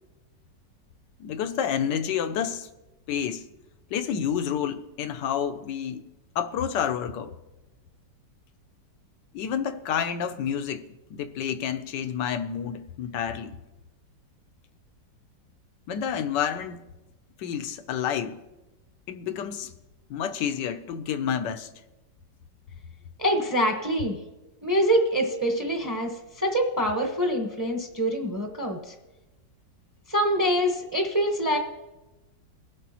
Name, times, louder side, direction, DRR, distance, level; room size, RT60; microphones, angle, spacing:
voice 1, 1.2-2.7 3.1-3.5 3.9-6.0 6.3-7.3 9.3-13.6 15.9-16.9 17.4-18.4 19.1-19.7 20.1-21.7, left 8 dB, 80° left, 1.3 m, -29 dB
voice 2, 23.2-24.2 24.6-28.9 30.1-31.6, equal, 10° right, 0.9 m, -25 dB
22.0 x 8.0 x 3.0 m
omnidirectional pair, 1.9 m